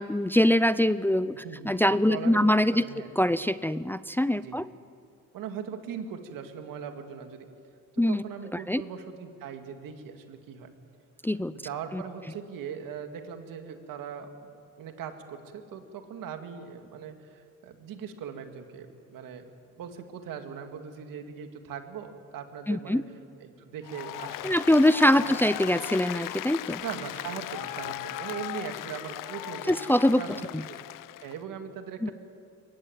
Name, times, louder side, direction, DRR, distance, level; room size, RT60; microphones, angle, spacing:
voice 1, 0.0-2.8 3.2-4.7 8.0-8.2 8.7-8.8 11.2-11.5 11.9-12.0 22.7-23.0 24.4-26.8 29.7-30.2 30.5-30.6 32.0-32.1, left 1 dB, 5° left, 15 dB, 0.5 m, -23 dB
voice 2, 1.4-3.1 4.4-4.6 5.3-7.5 7.9-10.7 11.6-19.5 19.8-23.0 23.4-24.5 25.3-25.4 26.8-29.8 30.1-30.8 31.2-32.1, right 7 dB, 80° right, 6 dB, 2.2 m, -40 dB
Applause, 23.8-31.4, left 15 dB, 80° left, 0.6 m, -37 dB
23.0 x 18.0 x 9.4 m, 2.3 s
cardioid pair, 80°, 33 cm